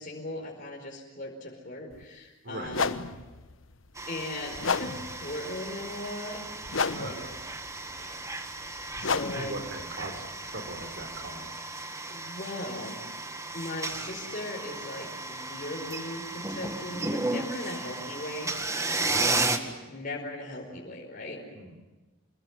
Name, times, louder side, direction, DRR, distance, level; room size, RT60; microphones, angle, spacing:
voice 1, 0.0-3.0 4.1-6.4 6.9-7.2 7.9-8.2 8.6-9.5 12.1-13.0 13.5-18.5 18.9-21.4, left 1 dB, 45° left, -1 dB, 4.9 m, -38 dB
sound 1, 1.9-2.0 2.7-11.5, left 4 dB, 75° left, 1.1 m, -34 dB
voice 2, 2.4-2.8 6.9-7.4 9.3-11.5 19.0-19.4 21.5-21.9, right 2 dB, 55° right, 7 dB, 3.8 m, -40 dB
sound 2, 4.0-19.6, right 2 dB, 15° right, 1.9 m, -34 dB
27.0 x 21.5 x 9.6 m, 1.2 s
head